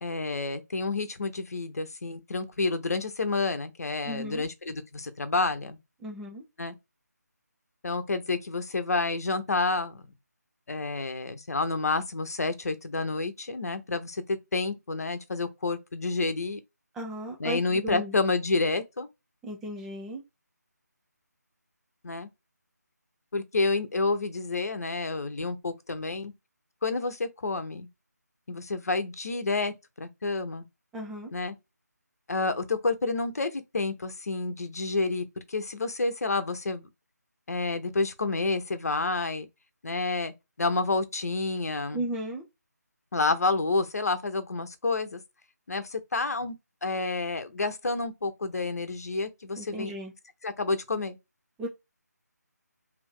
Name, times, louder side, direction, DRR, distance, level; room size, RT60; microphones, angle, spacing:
voice 1, 0.0-5.8 6.6-6.7 7.8-10.0 10.7-16.6 17.4-19.1 22.0-22.3 23.3-26.3 26.8-27.9 28.5-30.6 31.3-31.5 32.3-36.8 37.5-39.5 39.8-40.3 40.6-42.0 43.1-45.2 45.7-46.5 46.8-49.9 50.4-51.2, left 3 dB, 60° left, 0.8 m, -29 dB
voice 2, 4.1-4.5 6.0-6.4 16.9-18.1 19.4-20.2 30.9-31.3 41.9-42.5 49.6-50.1 51.6-51.7, right 1 dB, 5° right, 0.4 m, -35 dB
2.8 x 2.6 x 3.6 m
figure-of-eight pair, 155°, 10 cm